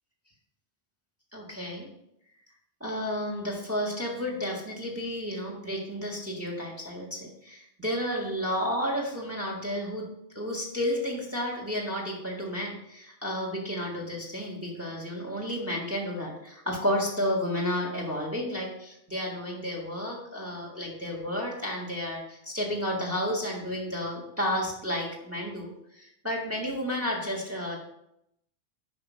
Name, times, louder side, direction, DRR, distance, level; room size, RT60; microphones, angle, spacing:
voice 1, 1.3-1.9 2.8-10.0 10.4-27.8, equal, 10° right, -1 dB, 1.7 m, -32 dB
8.5 x 5.4 x 4.7 m, 0.79 s
omnidirectional pair, 1.2 m